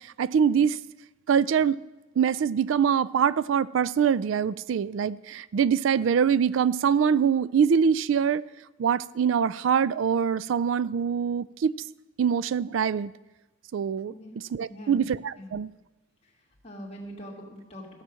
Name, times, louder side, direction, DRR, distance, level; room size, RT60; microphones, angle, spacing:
voice 1, 0.2-0.8 1.3-1.8 2.2-8.4 8.8-11.7 12.2-13.1 13.7-14.1 14.5-15.7, right 7 dB, 80° right, 0.3 m, -24 dB
voice 2, 14.7-15.0 15.4-15.6 16.2-18.0, equal, 30° left, 2.4 m, -43 dB
15.0 x 5.8 x 7.5 m
head